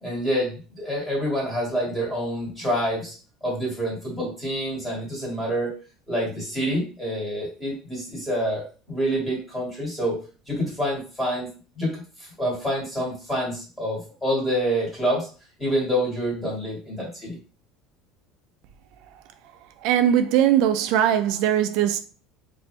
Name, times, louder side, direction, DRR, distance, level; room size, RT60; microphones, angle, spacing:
voice 1, 0.0-3.1 3.4-5.7 6.1-10.2 10.5-11.5 11.8-15.3 15.6-17.4, equal, 10° left, 1.9 m, -27 dB
voice 2, 19.8-22.0, right 10 dB, 60° right, 0.4 m, -20 dB
4.3 x 2.6 x 3.3 m
cardioid pair, 170°, 0 cm